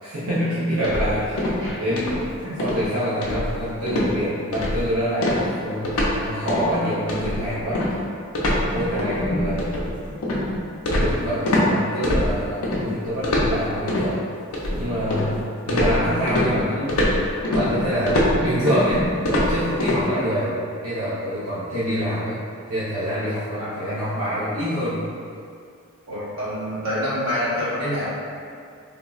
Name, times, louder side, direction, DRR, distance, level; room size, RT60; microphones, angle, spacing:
voice 1, 0.0-1.4 1.8-2.1 2.6-7.9 8.7-9.7 10.9-14.3 14.7-15.4 15.6-17.1 17.5-22.4 22.7-25.0, equal, 80° right, -11 dB, 0.5 m, -26 dB
sound 1, 0.8-1.7 2.0-2.3 2.6-2.8 3.2-3.6 3.9-4.1 4.5-4.9 5.2-6.2 6.5-6.7 7.1-11.7 12.0-12.8 13.2-14.1 14.5-15.4 15.7-20.0, left 1 dB, 85° left, 0.5 m, -23 dB
voice 2, 7.1-7.5 23.6-23.9 26.1-28.1, equal, 60° right, -10 dB, 0.9 m, -27 dB
3.3 x 2.0 x 2.4 m, 2.4 s
head